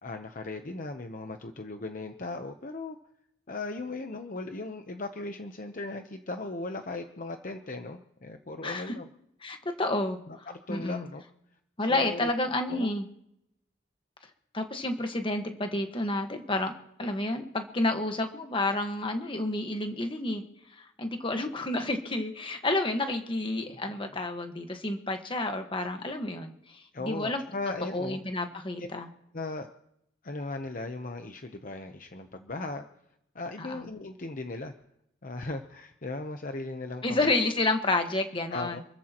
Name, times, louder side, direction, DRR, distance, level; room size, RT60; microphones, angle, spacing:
voice 1, 0.0-3.0 3.5-9.1 10.3-11.2 11.9-12.3 12.7-12.9 26.9-28.2 28.8-28.9 29.3-29.7 30.2-32.8 33.3-34.7 35.2-37.3 38.5-38.8, left 2 dB, 45° left, 6 dB, 0.9 m, -37 dB
voice 2, 8.6-8.9 9.4-10.2 10.7-11.0 11.8-13.1 14.5-16.7 17.0-20.4 20.8-26.5 27.0-27.4 27.9-29.1 33.6-33.8 37.0-38.8, left 2 dB, 30° left, 5 dB, 1.5 m, -30 dB
27.5 x 14.0 x 3.0 m, 0.78 s
head